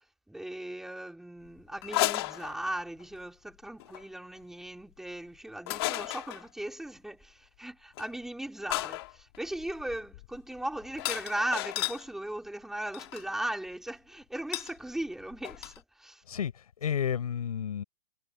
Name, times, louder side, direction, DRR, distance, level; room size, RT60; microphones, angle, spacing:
voice 1, 0.3-16.2, right 1 dB, ahead, 2.4 m, -38 dB
sound 1, 1.8-3.0 3.8-4.0 5.7-6.5 8.0-8.1 8.7-12.0 12.9-13.2 14.5-14.7 15.0-15.1 15.3-15.8, left 19 dB, 45° left, 2.8 m, -33 dB
voice 2, 16.3-17.8, left 8 dB, 80° left, 5.6 m, -31 dB
hypercardioid pair, 155°, 19 cm